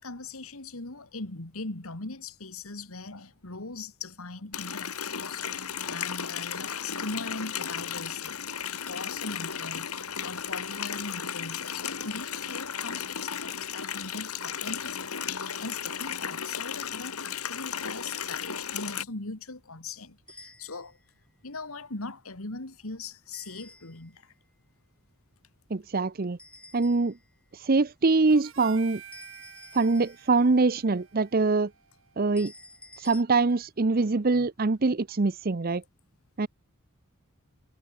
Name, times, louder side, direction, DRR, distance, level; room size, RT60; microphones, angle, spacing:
voice 1, 0.0-8.5 8.9-9.9 10.2-21.0 21.4-24.3, left 3 dB, 75° left, 2.4 m, -40 dB
Water tap faucet, 4.5-19.0, left 7 dB, 90° left, 3.0 m, -35 dB
sound 1, 20.3-21.1 23.3-24.2 26.4-27.3 29.1-30.5 32.4-33.2, left 2 dB, 5° left, 6.7 m, -50 dB
voice 2, 25.7-26.4 26.7-27.2 27.5-29.0 29.7-31.7 32.2-32.5 33.0-35.8 36.4-36.5, right 3 dB, 40° right, 0.7 m, -24 dB
Harmonica, 28.3-32.8, right 8 dB, 60° right, 6.5 m, -50 dB
head